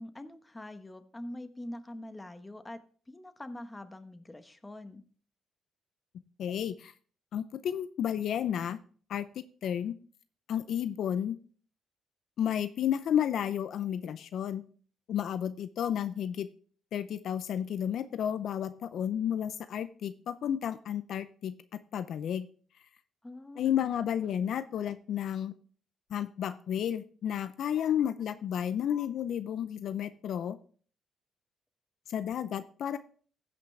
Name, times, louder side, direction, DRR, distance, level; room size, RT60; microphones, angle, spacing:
voice 1, 0.0-5.0 23.2-23.9, left 1 dB, 15° left, 9 dB, 1.1 m, -44 dB
voice 2, 6.4-6.9 7.3-8.8 9.1-9.3 9.6-10.0 10.5-11.4 12.4-14.6 15.1-16.5 16.9-21.5 21.9-22.5 23.6-25.5 26.1-30.6 32.1-33.0, left 9 dB, 70° left, 12 dB, 0.5 m, -32 dB
15.0 x 6.0 x 3.3 m, 0.43 s
cardioid pair, 90°, 0 cm